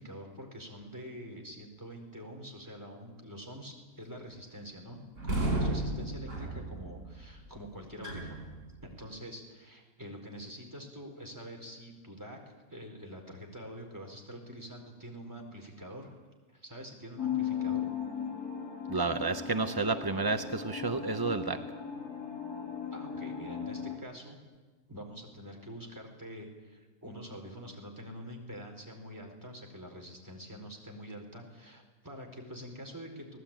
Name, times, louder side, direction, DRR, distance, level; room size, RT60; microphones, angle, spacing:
voice 1, 0.0-8.5 8.8-16.2 16.5-17.8 22.9-24.4 24.9-33.4, equal, 10° right, 1 dB, 4.3 m, -46 dB
sound 1, 5.2-9.0, right 2 dB, 55° right, 6.0 m, -34 dB
sound 2, 17.2-24.0, left 8 dB, 80° left, 2.8 m, -37 dB
voice 2, 18.9-21.6, right 3 dB, 25° right, 8 dB, 0.4 m, -31 dB
24.5 x 18.5 x 8.9 m, 1.3 s
omnidirectional pair, 1.6 m